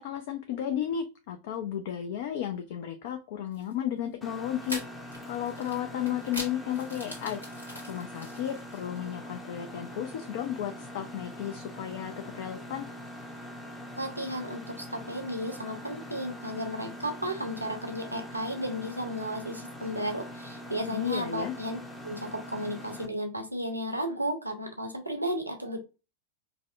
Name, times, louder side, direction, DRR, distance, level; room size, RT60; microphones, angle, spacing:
voice 1, 0.0-4.8 5.3-7.4 7.9-12.9 20.9-21.5, left 10 dB, 50° left, 7 dB, 0.4 m, -33 dB
sound 1, 3.5-3.7 4.6-9.0, equal, 85° left, 1.3 m, -42 dB
Mechanisms, 4.2-23.1, equal, 15° left, 0.7 m, -43 dB
voice 2, 14.0-21.8 22.0-25.8, equal, 85° right, 5 dB, 0.6 m, -34 dB
4.8 x 2.0 x 2.4 m, 0.30 s
figure-of-eight pair, 90°, 0 cm